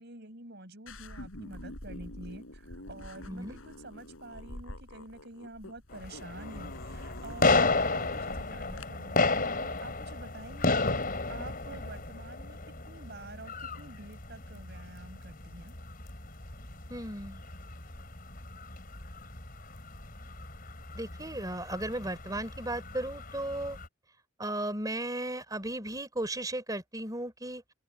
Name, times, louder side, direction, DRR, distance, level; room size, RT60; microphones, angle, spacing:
voice 1, 0.0-12.6 12.9-15.7, right 2 dB, 55° right, 6.5 m, -48 dB
sound 1, 0.9-8.9, left 1 dB, 85° left, 5.2 m, -46 dB
voice 2, 3.3-3.6 16.9-17.4 20.9-23.8 24.4-27.6, right 1 dB, 20° right, 3.3 m, -35 dB
sound 2, 5.9-23.9, left 3 dB, 45° left, 4.7 m, -33 dB
open air
head